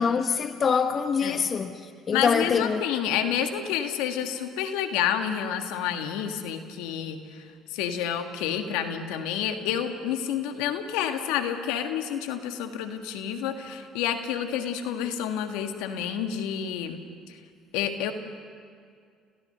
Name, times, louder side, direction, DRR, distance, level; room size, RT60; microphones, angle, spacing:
voice 1, 0.0-1.8 2.1-2.8, left 6 dB, 45° left, 1.0 m, -24 dB
voice 2, 2.1-7.4 7.7-17.0 17.3-17.4 17.7-18.1, left 9 dB, 75° left, 1.5 m, -29 dB
29.5 x 16.0 x 6.7 m
hypercardioid pair, 65°, 0 cm